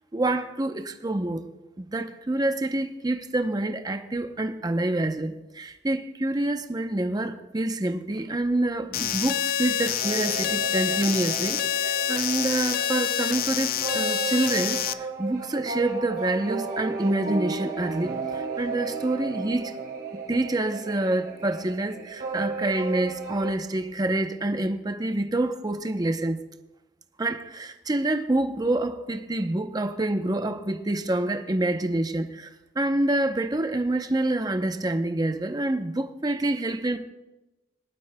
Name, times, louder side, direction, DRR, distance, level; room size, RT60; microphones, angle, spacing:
voice 1, 0.1-1.4 1.8-19.7 20.3-26.4 27.2-32.5 32.7-37.0, right 2 dB, 20° right, 0.7 m, -27 dB
sound 1, 8.9-14.9, left 10 dB, 55° left, 0.4 m, -27 dB
sound 2, 10.0-23.5, right 4 dB, 55° right, 2.0 m, -34 dB
20.0 x 12.0 x 2.2 m
head